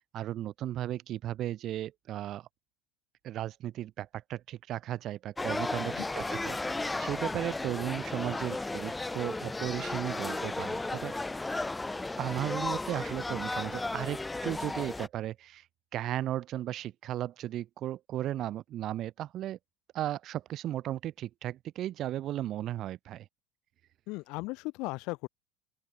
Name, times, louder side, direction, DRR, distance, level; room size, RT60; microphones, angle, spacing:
voice 1, 0.0-2.5 3.2-11.1 12.2-15.7 15.9-19.6 19.9-23.3, right 13 dB, 40° right, 5.7 m, -35 dB
sound 1, 5.4-15.1, left 2 dB, 10° left, 1.4 m, -34 dB
voice 2, 24.1-25.3, left 25 dB, 55° left, 5.7 m, -37 dB
open air
cardioid pair, 155°, 0 cm